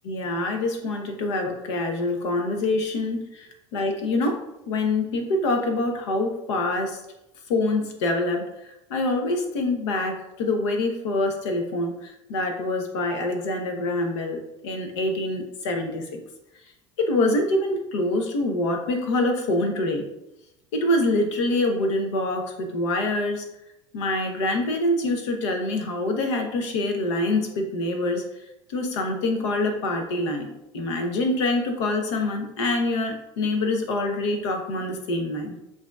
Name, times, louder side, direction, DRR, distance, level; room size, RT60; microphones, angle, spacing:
voice 1, 0.0-7.0 7.5-16.0 17.0-20.0 20.7-23.4 23.9-28.2 28.7-35.5, left 2 dB, 75° left, 4 dB, 0.9 m, -25 dB
7.1 x 2.8 x 2.4 m, 0.90 s
hypercardioid pair, 75°, 15 cm